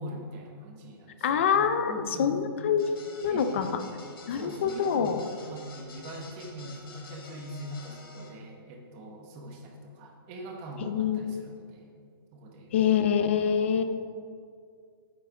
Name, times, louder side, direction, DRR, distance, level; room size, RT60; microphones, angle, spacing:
voice 1, 0.0-2.3 3.3-3.7 4.3-11.9 12.3-12.7, right 1 dB, 20° right, 2 dB, 0.9 m, -42 dB
voice 2, 1.2-2.9 3.2-3.7 4.3-5.2 10.8-11.4 12.7-13.8, left 7 dB, 30° left, 9 dB, 0.5 m, -25 dB
sound 1, 2.8-8.3, left 3 dB, 65° left, 2.0 m, -49 dB
9.4 x 6.2 x 6.1 m, 2.2 s
hypercardioid pair, 175°, 13 cm